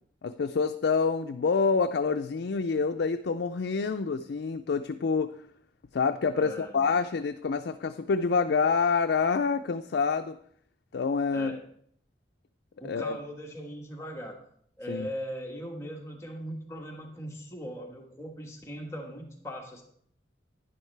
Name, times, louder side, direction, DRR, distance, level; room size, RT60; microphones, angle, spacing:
voice 1, 0.2-5.3 5.9-10.4 10.9-11.6 12.8-13.2 14.9-15.1, left 5 dB, 75° left, 6 dB, 0.4 m, -27 dB
voice 2, 6.3-6.8 11.3-11.6 12.8-14.4 14.8-19.8, equal, 15° left, 0 dB, 1.4 m, -39 dB
11.0 x 10.0 x 3.3 m, 0.65 s
head